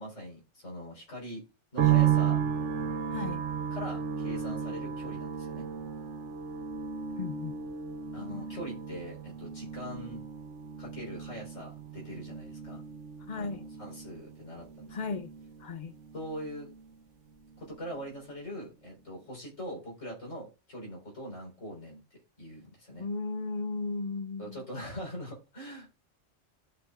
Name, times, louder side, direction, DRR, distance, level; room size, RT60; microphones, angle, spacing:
voice 1, 0.0-1.5 1.7-2.4 3.7-5.7 8.1-10.2 10.8-12.8 13.3-15.0 16.1-16.7 17.6-22.0 22.4-23.1 24.4-25.9, equal, 80° left, 4.3 m, -42 dB
sound 1, 1.8-17.0 17.3-18.1, right 9 dB, 70° right, 1.2 m, -33 dB
voice 2, 3.1-3.4 7.2-7.6 13.3-13.6 14.9-15.3 15.6-15.9 23.0-24.6, left 4 dB, 55° left, 0.5 m, -35 dB
14.0 x 6.0 x 2.4 m
omnidirectional pair, 1.3 m